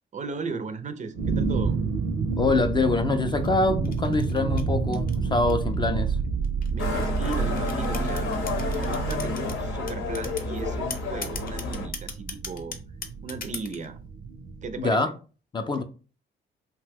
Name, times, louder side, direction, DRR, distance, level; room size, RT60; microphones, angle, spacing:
voice 1, 0.1-1.8 6.7-8.3 8.7-12.8 13.2-14.0 14.6-15.0, right 4 dB, 40° right, 0.4 m, -36 dB
sound 1, 1.1-14.8, right 5 dB, 85° right, 0.6 m, -30 dB
voice 2, 2.4-6.2 14.8-15.1 15.5-15.8, left 3 dB, 25° left, 0.4 m, -24 dB
sound 2, 3.3-5.8 6.4-9.6 9.9-10.5 10.9-13.9, left 5 dB, 45° left, 0.7 m, -38 dB
Motorcycle, 6.8-11.9, left 4 dB, 85° left, 0.8 m, -30 dB
2.8 x 2.1 x 3.3 m
cardioid pair, 90°, 20 cm